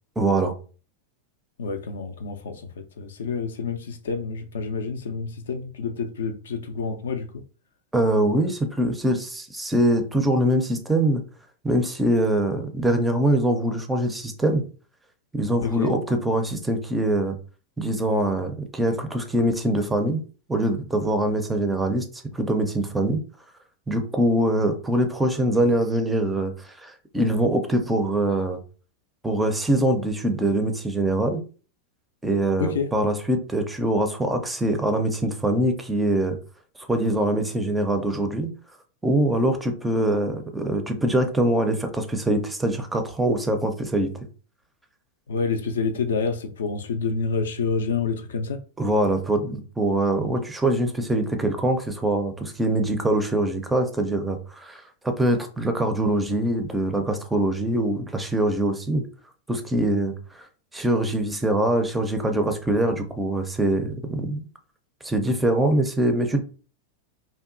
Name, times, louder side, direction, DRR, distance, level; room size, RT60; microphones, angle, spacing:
voice 1, 0.2-0.5 7.9-11.2 11.6-14.6 15.3-17.4 17.8-20.2 20.5-22.0 22.3-23.2 23.9-28.6 29.2-31.4 32.2-36.4 36.9-38.5 39.0-44.1 48.8-59.0 59.5-60.1 60.7-64.5 65.0-66.4, right 1 dB, 10° right, 0.4 m, -23 dB
voice 2, 1.6-7.3 15.6-15.9 32.6-32.9 45.3-48.6, left 5 dB, 65° left, 0.3 m, -28 dB
2.7 x 2.2 x 2.4 m
figure-of-eight pair, 90°, 0 cm